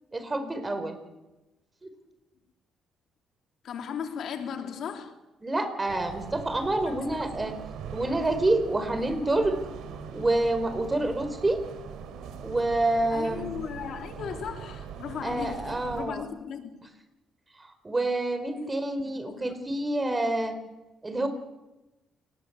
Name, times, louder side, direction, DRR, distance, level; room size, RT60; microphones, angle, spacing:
voice 1, 0.1-0.9 1.8-1.9 5.4-7.5 7.9-9.6 10.1-11.6 12.4-13.5 15.2-16.2 17.6-20.6 21.0-21.3, right 2 dB, 20° right, 4.9 m, -27 dB
voice 2, 3.6-5.1 6.8-7.5 13.1-16.8 19.0-19.6, left 7 dB, 70° left, 3.1 m, -37 dB
sound 1, 5.9-16.0, right 6 dB, 85° right, 3.6 m, -41 dB
29.0 x 19.5 x 8.3 m
cardioid pair, 90°, 0 cm